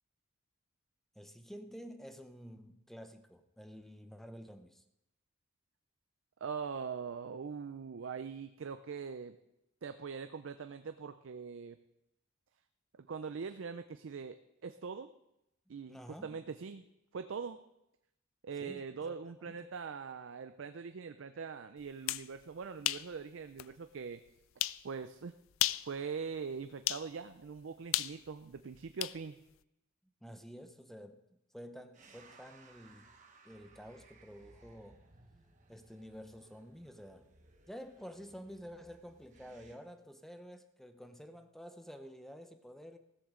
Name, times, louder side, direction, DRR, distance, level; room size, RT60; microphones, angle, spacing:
voice 1, 1.2-4.8 15.7-16.4 18.6-19.7 30.0-31.2 31.5-33.1 33.4-35.0 35.7-37.3 37.7-43.0, equal, ahead, 0.7 m, -50 dB
voice 2, 6.4-9.4 9.8-11.8 13.1-15.1 15.7-16.9 17.1-17.6 18.4-24.2 24.8-25.3 25.9-29.4, right 5 dB, 65° right, 0.4 m, -42 dB
sound 1, 21.9-22.3 22.8-23.1 23.6-23.7 24.6-24.8 25.5-25.9 26.9-27.1 27.9-29.2, left 15 dB, 75° left, 0.4 m, -33 dB
sound 2, 31.9-39.8, right 3 dB, 40° right, 1.3 m, -62 dB
15.0 x 13.5 x 3.7 m
head